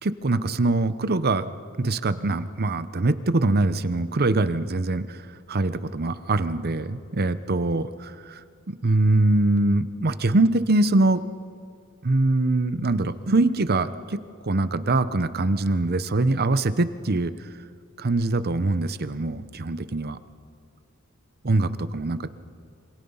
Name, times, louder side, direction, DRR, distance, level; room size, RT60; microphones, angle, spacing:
voice 1, 0.0-1.4 1.8-5.2 5.5-8.1 8.7-11.2 12.0-14.2 14.4-17.3 18.0-20.2 21.4-22.3, right 2 dB, 45° right, 13 dB, 0.8 m, -23 dB
27.0 x 25.5 x 5.6 m, 2.3 s
head